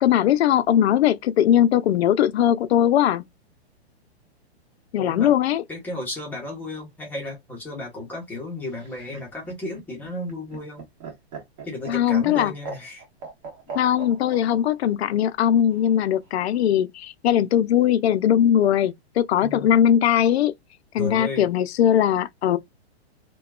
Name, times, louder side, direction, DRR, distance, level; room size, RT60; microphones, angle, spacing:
voice 1, 0.0-3.2 4.9-5.6 11.9-12.5 13.7-20.5 20.9-22.6, left 10 dB, 75° left, 0.5 m, -20 dB
voice 2, 5.0-5.3 5.7-10.8 11.6-13.0 19.4-19.7 21.0-21.5, left 1 dB, 5° left, 0.7 m, -34 dB
Laughter, 8.7-14.4 15.7-16.3, right 4 dB, 40° right, 1.4 m, -38 dB
2.8 x 2.2 x 2.3 m
hypercardioid pair, 155°, 33 cm